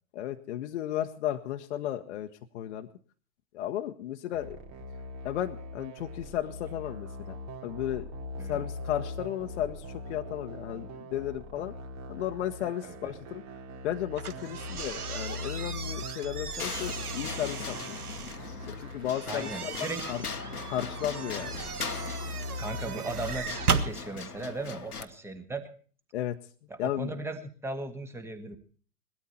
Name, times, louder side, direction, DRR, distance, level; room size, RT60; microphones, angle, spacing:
voice 1, 0.1-2.3 2.5-2.9 3.5-4.6 5.2-7.4 7.6-8.1 8.5-11.7 12.1-13.4 13.8-18.0 18.7-19.7 20.1-20.2 20.7-21.6 26.1-26.4 26.8-27.1, left 12 dB, 50° left, 5 dB, 1.2 m, -34 dB
sound 1, 4.3-23.7, left 1 dB, 40° right, 3.2 m, -41 dB
sound 2, 14.1-18.4 19.1-23.9, right 6 dB, 80° right, 1.6 m, -36 dB
voice 2, 14.4-14.8 19.3-20.1 22.6-25.7 26.7-28.6, right 2 dB, 5° right, 8 dB, 1.8 m, -37 dB
sound 3, 16.6-25.1, left 5 dB, 85° left, 1.4 m, -40 dB
19.0 x 13.0 x 4.2 m, 0.42 s
figure-of-eight pair, 115°, 44 cm